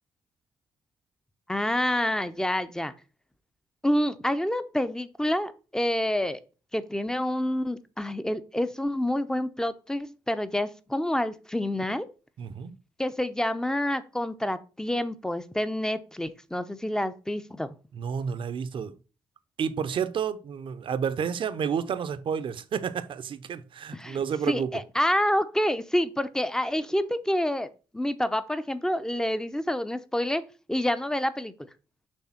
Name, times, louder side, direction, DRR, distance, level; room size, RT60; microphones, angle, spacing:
voice 1, 1.5-2.9 3.8-6.4 6.7-12.1 13.0-17.7 23.9-24.2 24.5-27.7 27.9-31.5, left 1 dB, 5° left, 0.8 m, -28 dB
voice 2, 12.4-12.8 17.9-19.0 19.6-24.8, right 7 dB, 60° right, 0.7 m, -30 dB
6.4 x 3.4 x 5.8 m
supercardioid pair, 70°, 10 cm